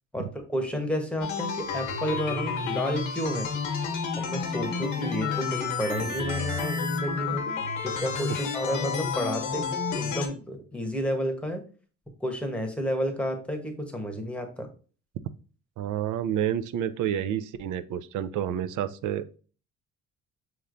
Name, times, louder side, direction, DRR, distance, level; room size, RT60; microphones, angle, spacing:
voice 1, 0.1-3.5 4.2-7.4 7.8-9.7 9.9-11.6 12.2-14.7, equal, 5° left, 3 dB, 1.0 m, -31 dB
sound 1, 1.2-10.3, left 5 dB, 85° left, 0.9 m, -30 dB
voice 2, 15.8-19.2, right 10 dB, 80° right, 13 dB, 0.5 m, -29 dB
5.6 x 3.1 x 2.5 m, 0.38 s
cardioid pair, 90°, 30 cm